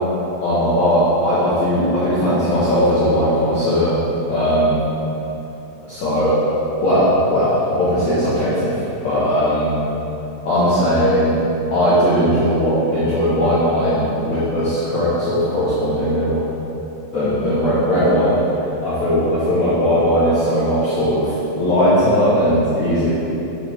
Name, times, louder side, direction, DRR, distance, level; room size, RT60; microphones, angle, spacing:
voice 1, 0.4-3.9 4.3-4.8 5.9-6.4 6.8-8.7 9.0-9.8 10.4-11.4 11.7-16.4 17.1-18.4 18.8-23.1, equal, 55° left, -12 dB, 2.6 m, -18 dB
10.0 x 8.2 x 3.7 m, 3.0 s
omnidirectional pair, 4.8 m